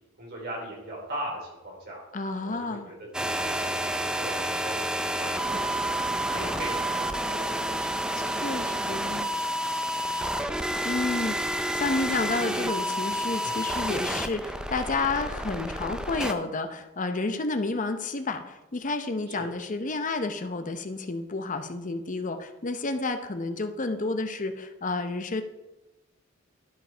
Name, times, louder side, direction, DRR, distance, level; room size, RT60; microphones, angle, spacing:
voice 1, 0.2-2.0 2.4-3.8 4.1-4.8 5.2-9.5 10.0-10.6 13.4-13.7 14.0-14.1 19.3-19.5, right 1 dB, 50° right, -2 dB, 3.4 m, -40 dB
voice 2, 2.1-2.9 5.5-5.8 8.4-9.3 10.8-25.4, left 3 dB, 40° left, 7 dB, 0.7 m, -30 dB
sound 1, 3.1-16.3, equal, 5° right, 0.4 m, -29 dB
11.5 x 5.2 x 4.5 m, 1.0 s
head